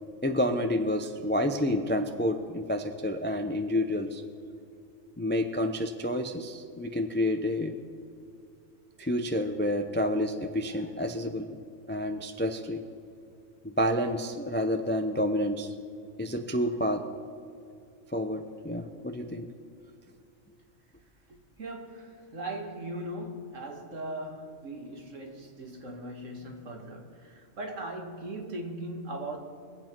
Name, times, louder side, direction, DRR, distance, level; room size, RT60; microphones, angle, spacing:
voice 1, 0.2-4.2 5.2-7.8 9.0-11.6 11.9-12.8 13.6-15.7 16.2-17.0 18.1-19.5, left 1 dB, 15° left, 6 dB, 0.5 m, -29 dB
voice 2, 21.3-29.4, right 1 dB, 65° right, 2 dB, 2.0 m, -39 dB
23.0 x 8.2 x 4.5 m, 2.4 s
omnidirectional pair, 1.4 m